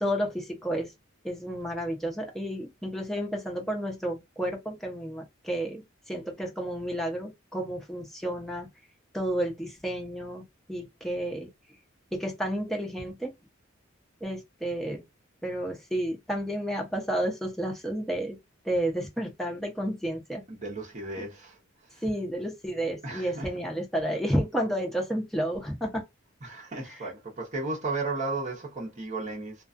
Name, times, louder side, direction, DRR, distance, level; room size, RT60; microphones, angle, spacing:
voice 1, 0.0-0.9 1.2-5.8 6.1-8.7 9.1-10.4 10.7-11.5 12.2-13.3 14.2-15.0 15.4-18.4 18.6-20.4 21.2-21.3 22.0-26.0 26.8-27.1, equal, ahead, 0.7 m, -31 dB
voice 2, 20.5-21.5 23.0-23.5 26.4-29.5, right 3 dB, 35° right, 0.8 m, -34 dB
2.4 x 2.3 x 2.4 m
head